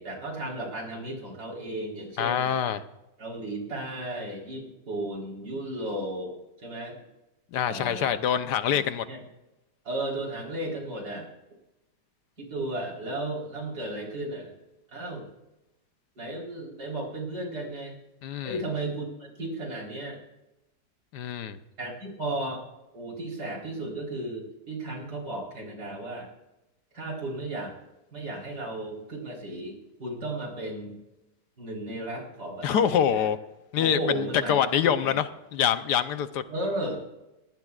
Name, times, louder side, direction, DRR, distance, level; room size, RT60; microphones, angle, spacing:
voice 1, 0.0-2.5 3.2-7.0 7.7-8.2 8.7-9.2 9.8-11.3 12.4-14.5 14.9-15.2 16.2-18.0 18.4-20.2 21.8-22.7 22.9-26.3 26.9-27.7 28.1-31.0 31.6-33.3 33.8-35.2 36.5-37.0, right 1 dB, 65° right, -2 dB, 4.4 m, -34 dB
voice 2, 2.2-2.8 7.5-9.0 18.2-18.6 21.1-21.6 32.6-33.4 33.7-36.4, left 9 dB, 75° left, 11 dB, 1.3 m, -25 dB
20.5 x 18.0 x 2.4 m, 0.96 s
omnidirectional pair, 1.9 m